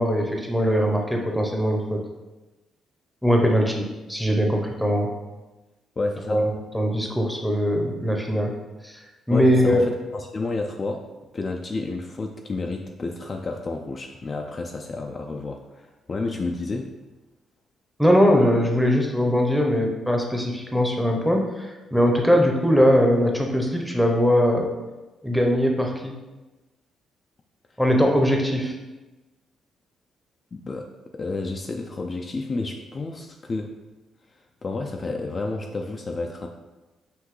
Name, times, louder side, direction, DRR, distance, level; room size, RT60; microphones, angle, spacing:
voice 1, 0.0-2.0 3.2-5.1 6.3-8.5 8.8-8.9 9.3-9.8 18.0-24.7 25.2-26.2 27.8-28.7, equal, ahead, 1 dB, 0.7 m, -21 dB
voice 2, 6.0-6.4 9.3-11.1 11.3-16.9 30.5-30.9 31.1-33.7 34.6-36.5, left 3 dB, 35° left, 3 dB, 0.3 m, -30 dB
5.8 x 2.6 x 3.1 m, 1.1 s
cardioid pair, 90°, 0 cm